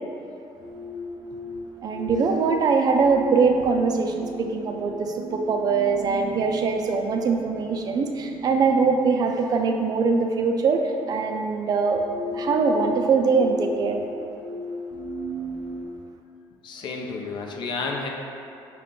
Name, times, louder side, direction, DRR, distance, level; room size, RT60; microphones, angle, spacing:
sound 1, 0.6-15.9, equal, 10° right, 0.6 m, -36 dB
voice 1, 1.8-12.0 12.3-14.0, right 4 dB, 45° right, 4 dB, 0.3 m, -22 dB
voice 2, 16.6-18.1, left 4 dB, 55° left, 1 dB, 0.5 m, -31 dB
4.7 x 2.2 x 3.7 m, 2.6 s
cardioid pair, 130°, 9 cm